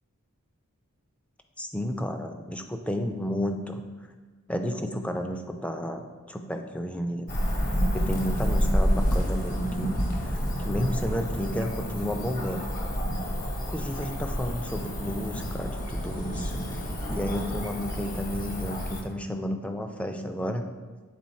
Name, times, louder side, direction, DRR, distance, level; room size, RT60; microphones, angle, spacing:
voice 1, 1.6-3.8 4.5-7.3 7.9-12.7 13.7-16.8 17.1-20.7, equal, 5° left, 5 dB, 0.4 m, -32 dB
Cricket / Motor vehicle (road), 7.3-19.0, equal, 40° left, 0.9 m, -29 dB
7.6 x 3.7 x 4.2 m, 1.3 s
head